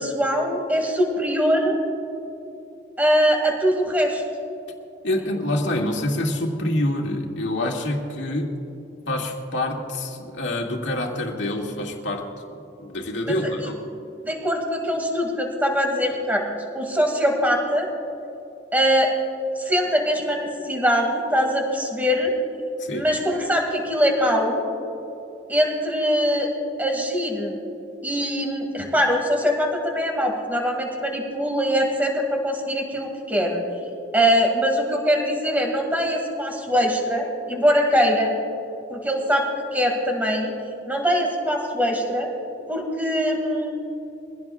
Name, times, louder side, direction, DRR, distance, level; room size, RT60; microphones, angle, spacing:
voice 1, 0.0-1.8 3.0-4.2 13.3-13.4 14.2-16.5 16.7-17.9 18.7-19.1 19.6-22.3 22.9-24.6 25.5-26.5 26.8-27.6 28.0-33.6 34.1-38.3 38.9-39.4 39.7-40.5 40.9-42.3 42.7-43.7, equal, 10° right, 1 dB, 2.2 m, -22 dB
voice 2, 5.0-8.6 9.1-12.3 12.8-13.8 22.8-23.1, left 1 dB, 90° left, 0 dB, 2.1 m, -26 dB
23.5 x 16.5 x 2.4 m, 2.9 s
head